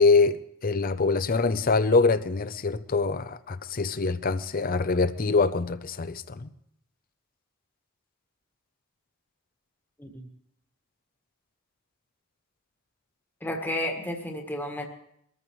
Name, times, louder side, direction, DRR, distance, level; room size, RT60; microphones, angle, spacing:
voice 1, 0.0-6.5, left 4 dB, 40° left, 0.6 m, -24 dB
voice 2, 13.4-14.8, left 1 dB, 10° left, 1.6 m, -32 dB
23.0 x 14.0 x 3.2 m
head